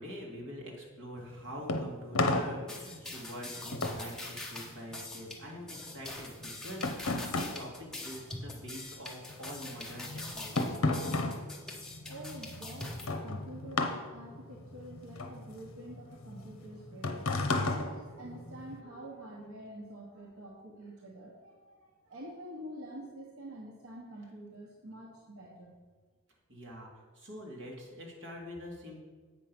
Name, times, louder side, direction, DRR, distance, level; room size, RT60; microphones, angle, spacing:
voice 1, 0.0-10.9 26.5-29.0, equal, 60° right, -2 dB, 2.1 m, -45 dB
sound 1, 1.2-8.8 9.1-18.8, left 2 dB, 70° left, 0.8 m, -34 dB
sound 2, 2.7-13.1, left 2 dB, 5° left, 1.0 m, -43 dB
voice 2, 12.0-17.2 17.6-25.7, right 1 dB, 85° right, -2 dB, 1.1 m, -47 dB
8.2 x 5.3 x 6.0 m, 1.4 s
head